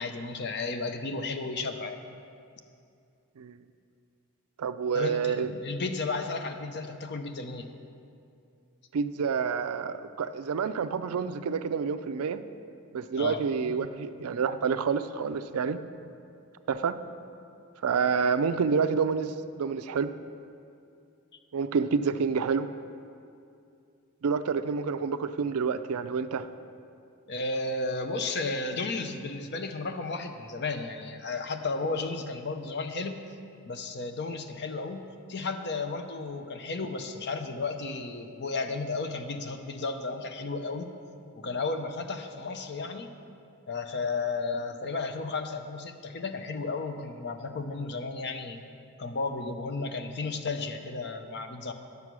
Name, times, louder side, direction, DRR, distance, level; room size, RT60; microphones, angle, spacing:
voice 1, 0.0-2.0 4.9-7.7 13.2-14.2 27.3-33.2 33.6-40.9 41.4-43.1 43.7-48.6 49.0-51.7, left 3 dB, 50° left, 7 dB, 0.6 m, -33 dB
voice 2, 4.6-5.5 8.9-12.4 12.9-15.8 16.7-16.9 17.8-20.1 21.5-22.7 24.2-26.5, right 5 dB, 75° right, 12 dB, 0.4 m, -28 dB
9.7 x 6.9 x 6.1 m, 2.5 s
head